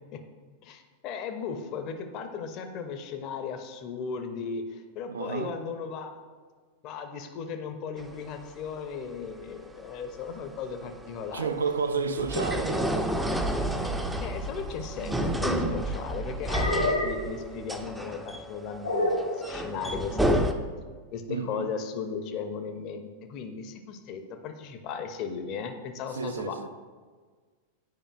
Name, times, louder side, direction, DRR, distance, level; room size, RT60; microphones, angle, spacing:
voice 1, 0.6-6.1 6.8-11.5 13.7-20.5 21.1-26.7, left 6 dB, 40° left, 0.6 m, -36 dB
voice 2, 5.1-5.5 11.3-13.1 21.3-21.7 26.1-26.7, right 5 dB, 70° right, 0.4 m, -31 dB
sound 1, 8.0-20.5, right 1 dB, 5° right, 0.5 m, -31 dB
sound 2, 15.0-15.8 16.5-17.3 18.8-19.3, left 1 dB, 80° left, 1.1 m, -28 dB
9.6 x 4.9 x 2.4 m
figure-of-eight pair, 90°, 0 cm